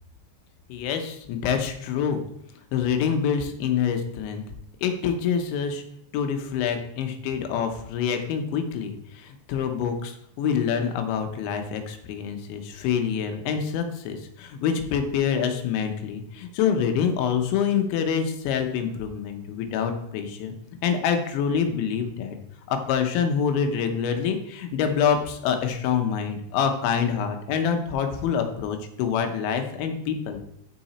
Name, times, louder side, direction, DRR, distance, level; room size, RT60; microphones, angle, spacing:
voice 1, 0.7-2.2 2.7-4.4 4.8-5.8 6.1-20.5 20.8-22.4 22.7-30.4, left 7 dB, 85° left, 6 dB, 3.2 m, -26 dB
12.0 x 4.9 x 4.2 m, 0.73 s
omnidirectional pair, 5.3 m